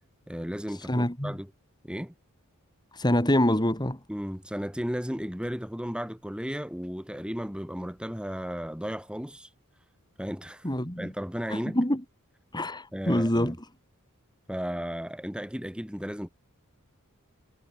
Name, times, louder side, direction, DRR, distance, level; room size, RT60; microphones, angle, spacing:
voice 1, 0.3-1.5 1.8-2.1 4.1-9.5 10.2-10.7 11.0-11.8 12.9-13.6 14.5-16.3, equal, 5° right, 6.9 m, -34 dB
voice 2, 0.9-1.3 2.9-4.0 10.6-11.1 11.5-12.0 12.5-13.5, left 1 dB, 20° left, 3.8 m, -25 dB
head